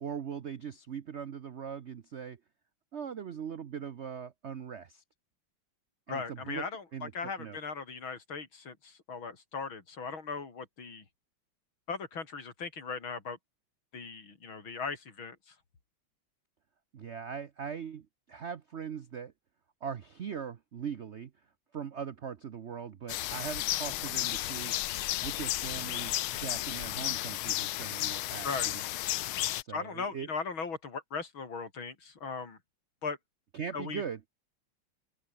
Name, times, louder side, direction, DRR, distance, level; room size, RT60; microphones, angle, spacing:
voice 1, 0.0-2.4 2.9-5.0 6.1-6.7 6.9-7.1 7.4-7.6 16.9-19.3 19.8-21.3 21.7-24.8 25.2-28.8 29.6-30.3 33.5-34.2, right 7 dB, 65° right, 0.6 m, -40 dB
voice 2, 6.1-11.0 11.9-13.4 13.9-15.4 28.4-28.7 29.7-32.6 33.0-33.2 33.7-34.0, left 5 dB, 70° left, 4.1 m, -38 dB
sound 1, 23.1-29.6, left 16 dB, 90° left, 1.6 m, -33 dB
open air
omnidirectional pair, 2.3 m